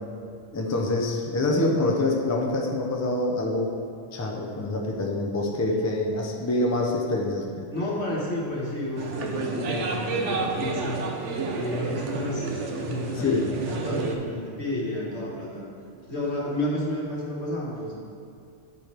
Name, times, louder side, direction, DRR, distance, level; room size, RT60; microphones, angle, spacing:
voice 1, 0.5-3.7 4.1-7.7 13.2-13.5, left 2 dB, 25° left, -1 dB, 0.4 m, -26 dB
voice 2, 7.7-11.0 11.6-12.5 12.8-15.7 16.1-17.9, left 1 dB, 65° left, -4 dB, 1.6 m, -31 dB
sound 1, 9.0-14.2, right 3 dB, 80° right, 1.0 m, -30 dB
8.8 x 4.4 x 3.3 m, 2.4 s
omnidirectional pair, 1.2 m